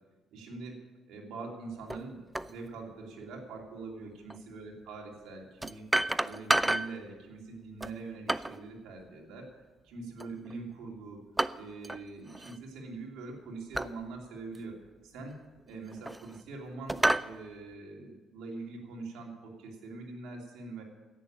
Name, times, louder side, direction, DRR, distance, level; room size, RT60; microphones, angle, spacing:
voice 1, 0.3-0.8 1.1-5.9 6.2-9.5 9.8-11.3 11.5-15.4 15.7-20.8, right 3 dB, 90° right, 0 dB, 3.0 m, -43 dB
sound 1, 1.9-2.0 2.4-2.5 4.3-4.4 5.6-7.0 7.8-8.6 10.2-10.6 11.4-12.0 12.3-12.6 13.7-14.0 14.6-14.7 15.6-16.4 16.9-17.3, right 1 dB, 10° right, 0.5 m, -30 dB
10.5 x 9.1 x 8.9 m, 1.2 s
cardioid pair, 90°, 0 cm